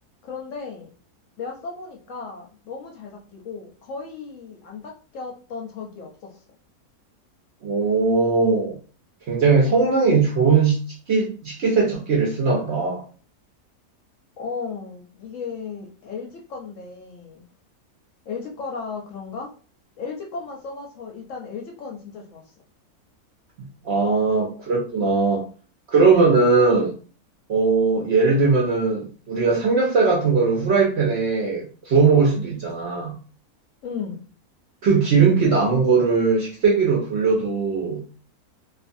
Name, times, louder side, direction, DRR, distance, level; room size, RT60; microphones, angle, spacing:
voice 1, 0.2-0.9 1.4-6.4 14.4-17.4 18.3-19.5 20.0-22.5 33.8-34.2, left 5 dB, 65° left, 0 dB, 0.9 m, -35 dB
voice 2, 7.6-8.8 9.3-10.8 11.1-13.0 23.8-25.4 25.9-26.9 27.5-33.1 34.8-38.0, right 4 dB, 60° right, -2 dB, 0.7 m, -19 dB
2.5 x 2.4 x 2.5 m, 0.38 s
omnidirectional pair, 1.6 m